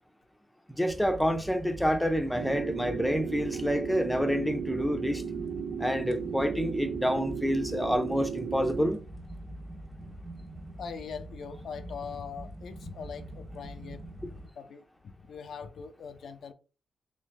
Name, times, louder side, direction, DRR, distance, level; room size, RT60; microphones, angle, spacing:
voice 1, 0.7-5.2 5.8-9.0, equal, 5° left, 0.6 m, -28 dB
sound 1, 0.9-14.5, right 1 dB, 15° right, 1.0 m, -44 dB
sound 2, 2.3-8.9, right 7 dB, 70° right, 0.5 m, -35 dB
voice 2, 10.8-14.0 14.5-16.5, left 6 dB, 70° left, 0.4 m, -42 dB
3.3 x 3.3 x 3.3 m
cardioid pair, 70°, 0 cm